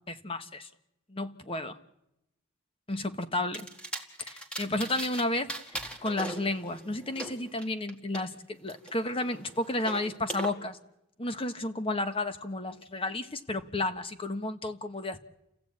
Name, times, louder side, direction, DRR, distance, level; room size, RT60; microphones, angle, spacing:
voice 1, 0.1-0.7 1.1-1.8 2.9-3.7 4.2-5.5 6.0-10.8 11.2-15.2, left 2 dB, 25° left, 9 dB, 1.1 m, -32 dB
sound 1, 3.5-5.2 5.5-8.2 8.7-10.5, right 2 dB, 5° left, 1.9 m, -39 dB
29.5 x 15.5 x 8.7 m, 0.88 s
head